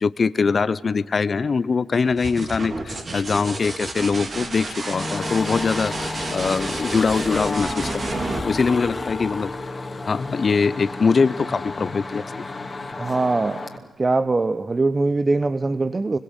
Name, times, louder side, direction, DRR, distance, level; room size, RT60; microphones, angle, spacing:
voice 1, 0.0-9.5 10.1-12.3, left 5 dB, 50° left, 16 dB, 0.8 m, -22 dB
sound 1, 2.0-9.6 11.4-12.0, right 3 dB, 50° right, 3.7 m, -31 dB
sound 2, 4.9-13.8, left 3 dB, 35° left, 2.6 m, -32 dB
voice 2, 13.0-13.7 14.0-16.2, right 3 dB, 35° right, 13 dB, 0.8 m, -22 dB
24.5 x 22.0 x 8.2 m, 1.5 s
supercardioid pair, 50°, 0 cm